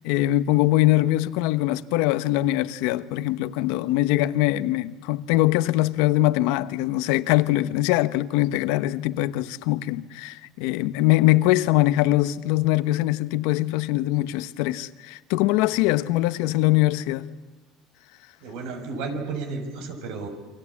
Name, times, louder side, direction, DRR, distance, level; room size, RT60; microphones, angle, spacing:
voice 1, 0.0-17.3, left 16 dB, 80° left, 1.0 m, -22 dB
voice 2, 18.4-20.3, right 4 dB, 75° right, 6.0 m, -32 dB
28.0 x 24.5 x 8.5 m
cardioid pair, 145°, 0 cm